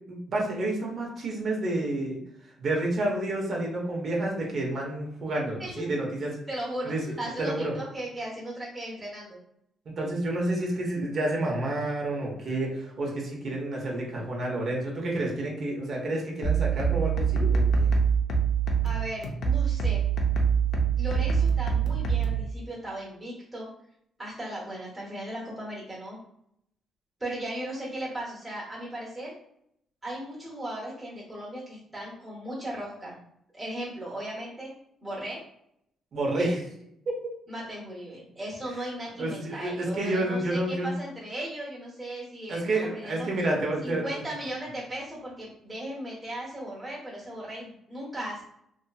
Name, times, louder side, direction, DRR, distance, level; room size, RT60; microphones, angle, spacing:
voice 1, 0.1-2.2 2.6-6.4 6.8-7.7 9.9-17.9 36.1-36.6 37.1-37.2 39.2-40.9 42.5-44.2, right 1 dB, 55° right, -1 dB, 1.0 m, -29 dB
voice 2, 5.6-6.0 6.5-9.4 18.8-20.0 21.0-23.7 24.2-26.2 27.2-29.3 30.0-33.2 33.5-34.7 35.0-35.4 36.4-36.5 37.5-43.3 43.8-48.4, right 1 dB, 15° right, -5 dB, 1.1 m, -37 dB
sound 1, 16.4-22.4, right 6 dB, 70° left, 0.6 m, -24 dB
2.9 x 2.7 x 2.3 m, 0.73 s
cardioid pair, 90°, 0 cm